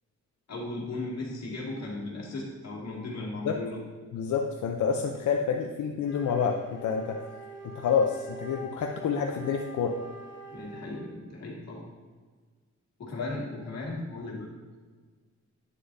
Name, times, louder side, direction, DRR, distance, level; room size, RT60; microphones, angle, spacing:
voice 1, 0.5-3.8 10.5-11.8 13.0-14.5, left 2 dB, 60° left, -3 dB, 2.0 m, -36 dB
voice 2, 4.1-7.2 7.7-10.0 13.2-13.3, left 6 dB, 90° left, 2 dB, 0.6 m, -28 dB
Wind instrument woodwind instrument, 6.0-11.2, right 1 dB, 40° left, 0.9 m, -44 dB
9.1 x 6.7 x 2.6 m, 1.5 s
wide cardioid pair, 165°, 29 cm